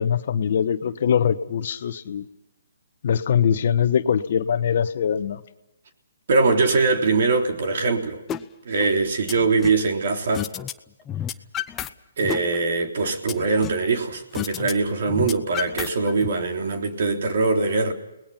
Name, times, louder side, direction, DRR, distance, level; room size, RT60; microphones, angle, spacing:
voice 1, 0.0-2.2 3.0-5.4, left 8 dB, 55° left, 1.2 m, -22 dB
voice 2, 6.3-8.2 8.7-10.5 12.2-17.9, right 3 dB, 60° right, 3.6 m, -22 dB
sound 1, 8.3-8.4 8.8-9.8 10.3-10.7 11.0-11.9 12.2-13.9 14.3-14.7 15.0-16.3, left 10 dB, 15° left, 0.8 m, -31 dB
29.5 x 19.5 x 5.8 m
hypercardioid pair, 145°, 0 cm